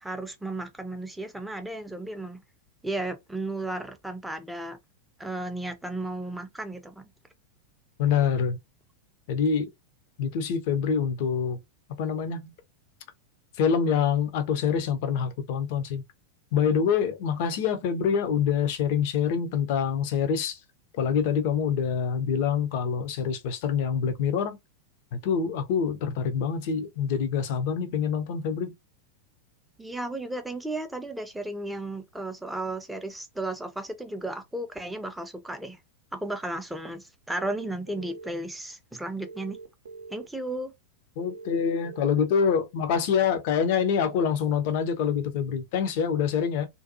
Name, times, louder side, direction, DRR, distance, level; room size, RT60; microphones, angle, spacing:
voice 1, 0.0-2.4 2.8-4.8 5.2-7.1 29.8-35.8 36.1-39.6 40.1-40.7, right 2 dB, 5° right, 0.5 m, -34 dB
voice 2, 8.0-8.6 9.3-9.7 10.2-11.6 12.0-12.5 13.6-16.0 16.5-20.6 21.0-24.6 25.2-28.7 41.2-46.7, left 7 dB, 50° left, 0.5 m, -26 dB
sound 1, 37.4-38.3 39.2-40.3 41.2-42.2, right 4 dB, 60° right, 0.5 m, -43 dB
2.6 x 2.2 x 2.6 m
figure-of-eight pair, 90°, 0 cm